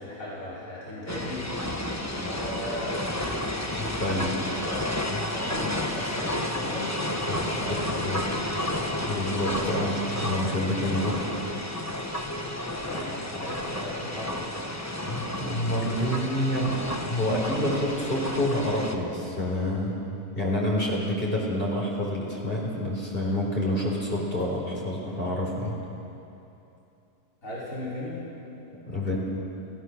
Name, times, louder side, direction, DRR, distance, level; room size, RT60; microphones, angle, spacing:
voice 1, 0.0-1.4 2.1-3.5 4.1-7.1 7.4-8.5 12.8-14.5 27.4-28.3, left 1 dB, 55° left, -8 dB, 5.4 m, -37 dB
sound 1, 1.1-18.9, left 1 dB, 10° left, 1.2 m, -31 dB
voice 2, 3.8-4.3 5.1-5.2 7.3-7.6 8.0-8.3 9.0-11.2 15.1-19.9 20.3-25.8 28.9-29.2, left 1 dB, 35° left, -3 dB, 4.2 m, -28 dB
29.0 x 15.5 x 6.5 m, 2.8 s
omnidirectional pair, 1.7 m